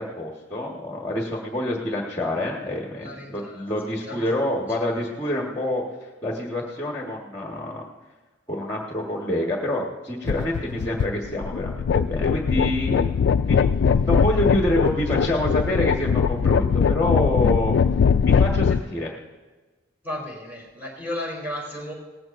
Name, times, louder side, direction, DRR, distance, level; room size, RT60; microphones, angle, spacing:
voice 1, 0.0-5.8 6.2-7.9 8.5-13.2 13.5-13.6 13.8-17.8 18.2-19.1, left 1 dB, 15° left, -1 dB, 1.4 m, -27 dB
voice 2, 3.0-4.3 4.5-5.0 20.0-21.9, left 1 dB, 10° right, -4 dB, 3.3 m, -35 dB
sound 1, 10.3-18.8, left 6 dB, 65° left, 0.3 m, -21 dB
18.5 x 15.5 x 2.6 m, 1.3 s
head